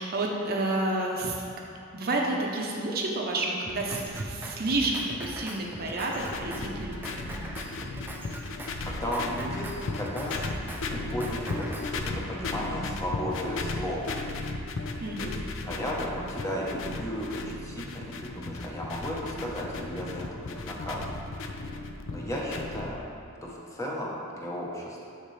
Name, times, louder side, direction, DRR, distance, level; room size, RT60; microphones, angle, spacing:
voice 1, 0.0-1.4 1.9-7.3 10.5-10.6 15.0-15.4, right 2 dB, 45° right, -1 dB, 0.7 m, -30 dB
Drum kit, 3.6-12.0, right 1 dB, 10° right, 0.4 m, -41 dB
sound 1, 6.2-22.9, left 3 dB, 65° left, 0.5 m, -36 dB
voice 2, 8.8-9.7 10.0-10.3 10.9-14.2 15.2-15.4 15.6-21.1 22.1-23.0 23.4-25.1, equal, 15° left, -4 dB, 0.9 m, -34 dB
6.6 x 6.5 x 3.2 m, 2.6 s
head